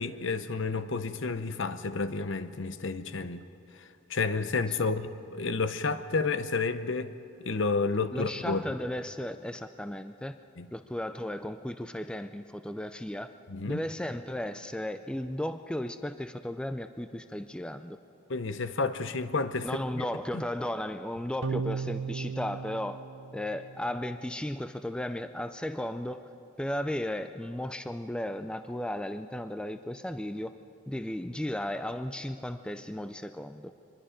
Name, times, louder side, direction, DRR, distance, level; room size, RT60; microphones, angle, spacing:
voice 1, 0.0-3.4 3.8-7.1 7.5-8.6 10.6-10.7 13.5-13.8 18.3-19.7 20.0-20.1 20.3-20.4, left 4 dB, 60° left, 11 dB, 0.8 m, -30 dB
voice 2, 8.1-10.4 10.7-13.3 13.7-18.0 19.6-23.0 23.3-26.2 26.6-30.5 30.9-33.7, left 1 dB, 5° left, 9 dB, 0.4 m, -35 dB
sound 1, 21.4-24.0, right 5 dB, 70° right, 0.8 m, -35 dB
24.5 x 21.0 x 5.1 m, 2.7 s
head